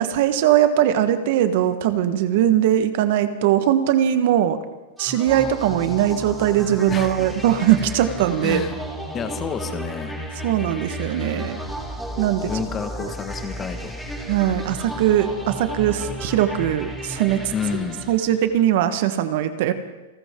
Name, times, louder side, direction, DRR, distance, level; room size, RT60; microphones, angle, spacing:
voice 1, 0.0-4.6 5.0-8.6 10.4-11.6 12.2-12.5 13.0-13.1 14.3-17.5 18.1-19.7, right 11 dB, 60° right, 10 dB, 1.4 m, -20 dB
sound 1, 5.0-18.6, equal, ahead, 2.6 m, -33 dB
voice 2, 8.4-8.8 9.1-10.1 12.4-13.9 17.5-18.0, left 7 dB, 25° left, 8 dB, 1.7 m, -29 dB
27.5 x 13.5 x 3.8 m, 1.1 s
hypercardioid pair, 135°, 0 cm